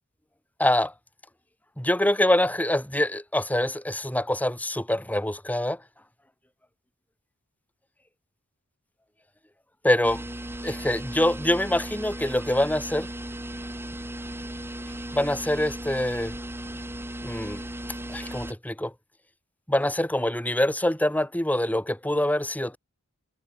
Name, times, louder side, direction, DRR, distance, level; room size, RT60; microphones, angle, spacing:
voice 1, 0.6-0.9 1.8-5.8 9.8-10.2 10.6-13.1 15.1-16.3 17.2-17.6 18.1-18.9 19.7-22.8, left 1 dB, 5° left, 2.6 m, -25 dB
sound 1, 10.0-18.5, right 1 dB, 10° right, 3.6 m, -36 dB
head